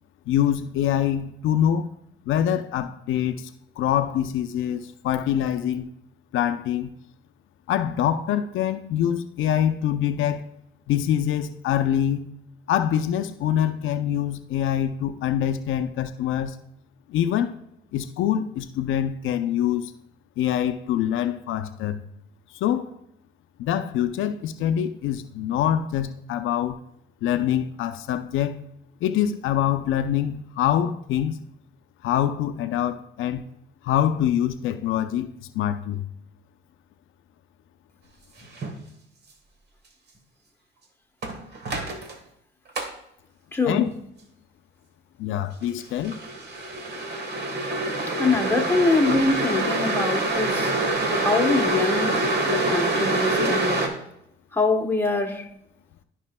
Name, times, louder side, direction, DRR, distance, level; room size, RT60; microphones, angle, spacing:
voice 1, 0.3-1.9 2.3-3.5 3.8-5.9 6.3-6.9 7.7-10.5 10.9-12.3 12.7-16.6 17.1-17.5 17.9-19.9 20.4-22.0 22.5-22.9 23.6-26.8 27.2-28.6 29.0-31.4 32.0-33.5 33.8-36.1 43.7-43.9 45.2-46.2, left 10 dB, 85° left, 0.5 m, -25 dB
sound 1, 38.6-38.8 41.2-42.1 42.8-42.9 46.0-53.9, right 2 dB, 55° right, 1.5 m, -25 dB
voice 2, 43.5-43.9 48.1-50.7 51.1-53.9 54.5-55.5, left 3 dB, 10° left, 1.1 m, -24 dB
14.0 x 5.1 x 2.2 m
cardioid pair, 90°, 20 cm